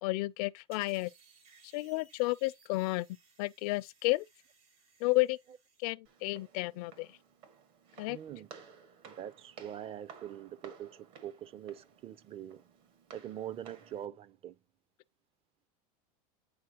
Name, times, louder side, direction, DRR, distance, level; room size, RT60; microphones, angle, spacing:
voice 1, 0.0-1.1 1.7-3.1 3.4-4.2 5.0-5.4 5.8-7.1 8.0-8.2, left 22 dB, 65° left, 0.4 m, -31 dB
sound 1, 0.7-5.8, right 4 dB, 80° right, 3.5 m, -63 dB
Walk footsteps, 6.0-14.1, right 6 dB, 65° right, 1.7 m, -55 dB
voice 2, 8.0-8.5 9.0-10.9 11.2-12.6 13.1-14.6, right 10 dB, 30° right, 0.4 m, -43 dB
8.5 x 4.3 x 2.8 m
supercardioid pair, 130°, 20 cm